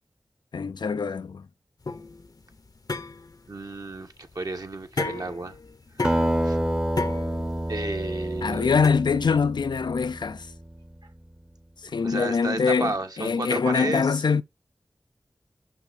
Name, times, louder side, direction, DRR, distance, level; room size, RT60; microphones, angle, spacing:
voice 1, 0.5-1.5 8.4-10.5 11.9-12.9 13.2-14.4, left 5 dB, 80° left, 0.4 m, -23 dB
sound 1, 1.8-8.9, left 3 dB, 55° left, 0.8 m, -34 dB
voice 2, 3.5-5.6 6.4-6.6 7.7-8.8 11.0-11.1 12.0-14.2, right 3 dB, 60° right, 1.3 m, -32 dB
Acoustic guitar, 6.0-10.9, right 1 dB, 15° right, 0.8 m, -28 dB
6.2 x 5.7 x 4.2 m
wide cardioid pair, 50°, 7 cm